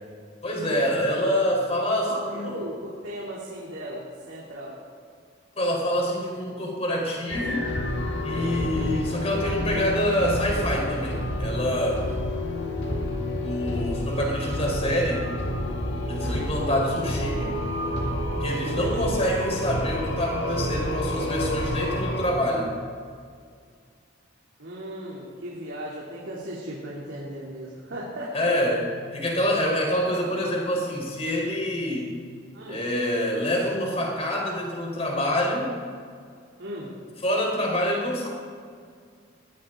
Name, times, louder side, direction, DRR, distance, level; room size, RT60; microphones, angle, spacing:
voice 1, 0.4-2.6 5.5-7.7 8.2-12.1 13.4-15.3 16.1-17.6 18.4-22.7 28.3-28.8 29.1-32.1 32.7-35.8 37.2-38.3, equal, 30° left, -1 dB, 4.4 m, -26 dB
voice 2, 2.1-4.8 8.3-8.6 15.9-16.5 18.6-19.0 24.6-28.5 32.5-32.8 36.6-36.9, right 1 dB, 80° right, -6 dB, 3.1 m, -37 dB
sound 1, 7.3-22.3, left 1 dB, 65° left, 2.0 m, -29 dB
20.0 x 16.0 x 3.9 m, 2.1 s
head